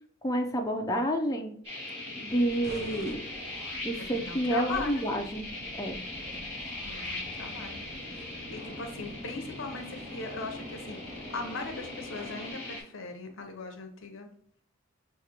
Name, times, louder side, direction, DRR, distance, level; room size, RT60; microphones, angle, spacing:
voice 1, 0.2-1.6 2.2-3.2 3.8-5.5 5.7-6.0, equal, 15° left, 3 dB, 0.4 m, -29 dB
sound 1, 1.6-12.8, left 2 dB, 25° right, 1.5 m, -40 dB
Subway metro underground, 2.3-12.5, left 1 dB, 85° right, 1.3 m, -47 dB
sound 2, 2.6-4.1, right 1 dB, 50° right, 0.5 m, -46 dB
voice 2, 4.1-5.2 6.8-7.8 8.1-14.3, left 3 dB, 65° left, 5 dB, 0.6 m, -39 dB
5.8 x 2.4 x 2.8 m, 0.63 s
head